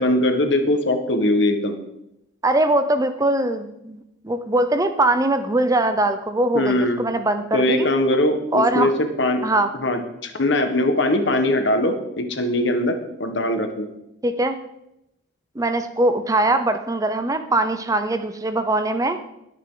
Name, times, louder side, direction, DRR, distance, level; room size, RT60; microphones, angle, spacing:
voice 1, 0.0-1.8 6.5-7.0 7.5-9.4 9.8-13.9, left 1 dB, 65° left, 6 dB, 1.4 m, -21 dB
voice 2, 2.4-7.9 8.5-8.9 9.4-9.7 14.2-14.5 15.6-19.2, right 2 dB, 15° right, 9 dB, 0.6 m, -21 dB
20.0 x 6.8 x 3.8 m, 0.87 s
head